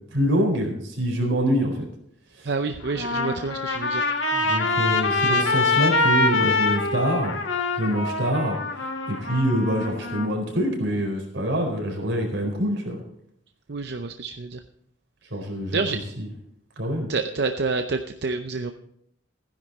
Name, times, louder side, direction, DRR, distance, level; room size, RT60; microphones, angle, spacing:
voice 1, 0.1-1.9 2.4-2.5 4.3-7.3 7.7-8.6 9.1-13.0 15.3-15.8 16.2-16.3 16.8-17.1, equal, 85° right, 2 dB, 4.3 m, -25 dB
voice 2, 2.4-4.0 13.7-14.6 15.7-16.0 17.1-18.7, right 4 dB, 60° right, 7 dB, 0.6 m, -28 dB
Trumpet, 2.8-10.3, left 3 dB, 90° left, 1.8 m, -24 dB
15.5 x 10.5 x 4.2 m, 0.70 s
head